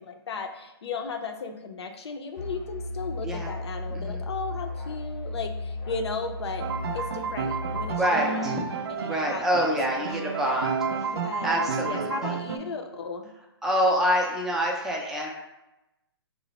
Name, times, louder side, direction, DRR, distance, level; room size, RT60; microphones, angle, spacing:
voice 1, 0.0-6.7 6.9-8.5 8.9-9.7 9.9-10.3 11.1-13.3, left 4 dB, 75° left, 5 dB, 0.5 m, -36 dB
Musical instrument, 2.4-8.1, left 2 dB, 35° left, 0.6 m, -35 dB
voice 2, 3.9-4.2 8.0-8.6 9.0-10.8 11.4-12.4 13.6-15.3, equal, 5° right, -1 dB, 0.4 m, -26 dB
sound 1, 6.6-12.6, right 5 dB, 70° right, 0.4 m, -31 dB
3.0 x 2.1 x 4.0 m, 0.96 s
hypercardioid pair, 140°, 14 cm